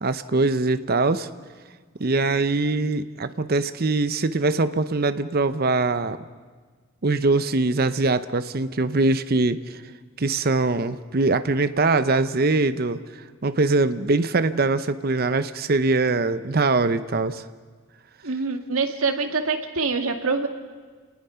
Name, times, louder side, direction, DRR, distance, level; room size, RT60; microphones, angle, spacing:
voice 1, 0.0-1.3 2.0-6.2 7.0-9.8 10.2-13.0 13.4-17.4, right 3 dB, 45° right, 12 dB, 0.7 m, -22 dB
voice 2, 18.2-20.5, right 4 dB, 85° right, 5 dB, 2.0 m, -25 dB
30.0 x 19.0 x 5.7 m, 1.5 s
head